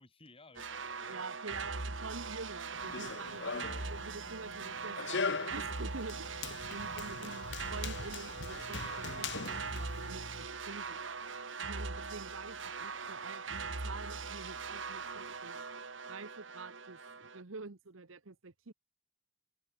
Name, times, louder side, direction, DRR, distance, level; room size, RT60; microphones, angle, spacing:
voice 1, 0.0-1.7 2.0-2.1 3.3-3.8, left 2 dB, 30° left, 5.1 m, -58 dB
sound 1, 0.5-17.4, right 4 dB, 70° right, 2.8 m, -41 dB
voice 2, 1.1-6.3 6.7-11.2 11.6-15.6 16.1-18.7, right 4 dB, 90° right, 1.2 m, -47 dB
Run, 2.7-10.5, left 5 dB, 60° left, 1.2 m, -41 dB
head